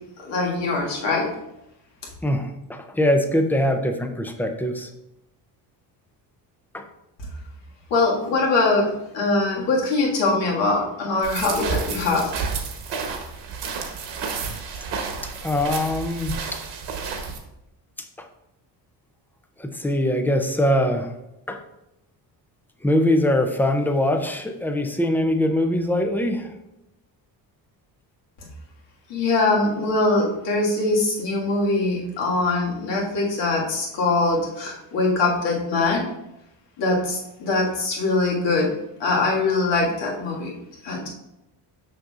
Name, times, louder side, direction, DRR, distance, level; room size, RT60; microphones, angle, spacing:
voice 1, 0.2-1.3 7.9-12.4 29.1-36.1 36.8-38.7 39.0-40.5 40.8-41.1, left 3 dB, 75° left, -3 dB, 1.9 m, -22 dB
voice 2, 2.2-4.9 6.7-6.8 15.2-16.6 18.0-18.3 19.6-21.1 21.5-21.6 22.8-26.5, left 1 dB, 5° left, 6 dB, 0.3 m, -23 dB
sound 1, 11.2-17.4, right 5 dB, 70° right, 1.2 m, -31 dB
6.5 x 6.0 x 2.4 m, 0.88 s
cardioid pair, 140°, 44 cm